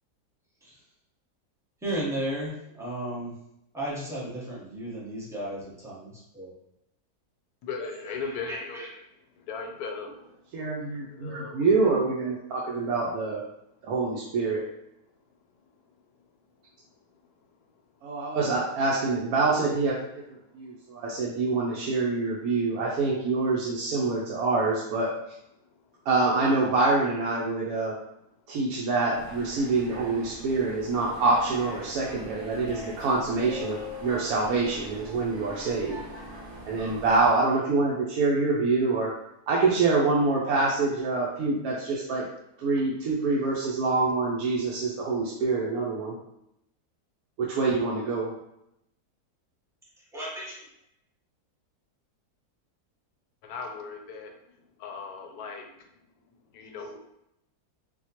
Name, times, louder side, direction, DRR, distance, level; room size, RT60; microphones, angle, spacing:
voice 1, 1.8-3.3 3.7-6.5 8.0-8.9 50.1-50.6, right 1 dB, 5° right, -7 dB, 0.7 m, -34 dB
voice 2, 7.7-8.8 9.4-10.4 10.7-11.9 37.4-37.5 53.4-54.3 54.8-55.7 56.5-57.0, left 5 dB, 80° left, 3 dB, 1.1 m, -38 dB
voice 3, 10.5-13.4 13.8-14.6 18.0-20.2 20.5-25.1 26.1-27.9 28.5-36.0 36.7-39.1 39.5-42.3 42.6-46.2 47.4-48.3, right 3 dB, 75° right, -4 dB, 1.0 m, -26 dB
sound 1, 29.1-37.3, left 1 dB, 60° right, 1.3 m, -42 dB
4.1 x 2.2 x 2.9 m, 0.82 s
omnidirectional pair, 1.7 m